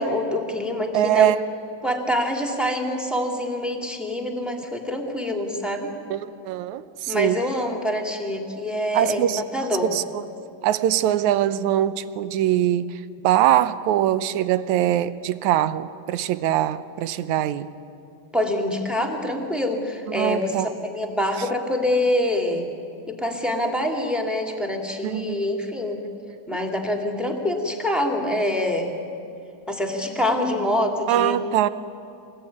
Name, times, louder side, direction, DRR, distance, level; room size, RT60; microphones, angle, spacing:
voice 1, 0.0-1.3 1.8-5.9 7.1-9.3 9.5-9.9 18.3-22.7 23.1-26.0 26.5-28.9 29.7-31.4, left 1 dB, ahead, 3 dB, 1.9 m, -25 dB
voice 2, 0.9-1.4 6.1-7.4 8.9-9.4 9.9-10.0 10.6-17.7 20.1-20.7 25.0-25.4 26.5-26.6 31.1-31.7, right 12 dB, 75° right, 14 dB, 1.9 m, -22 dB
26.0 x 19.5 x 9.5 m, 2.6 s
omnidirectional pair, 3.8 m